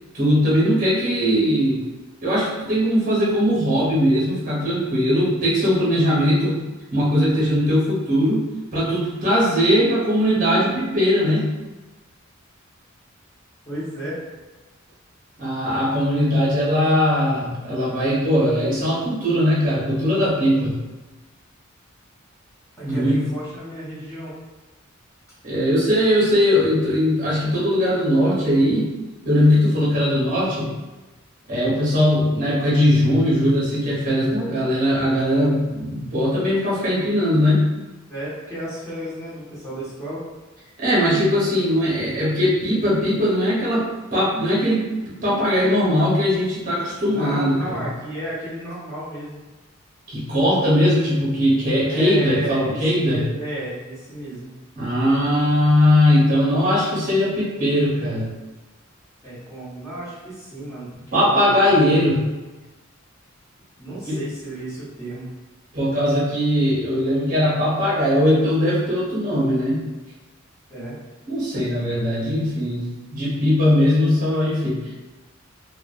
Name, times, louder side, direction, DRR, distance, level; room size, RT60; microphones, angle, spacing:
voice 1, 0.1-1.8 2.2-6.6 6.9-8.4 8.7-11.5 15.4-20.8 22.8-23.2 25.4-28.9 29.2-30.7 31.5-37.7 40.8-47.8 50.1-53.2 54.7-58.3 61.1-62.2 64.1-64.2 65.7-69.8 71.3-74.9, equal, 40° right, -7 dB, 0.9 m, -20 dB
voice 2, 13.7-14.2 22.8-24.3 38.1-40.2 47.0-49.4 51.8-54.6 59.2-61.6 63.8-65.3 70.7-71.0, right 1 dB, 15° left, -11 dB, 0.9 m, -33 dB
2.3 x 2.2 x 2.4 m, 1.2 s
head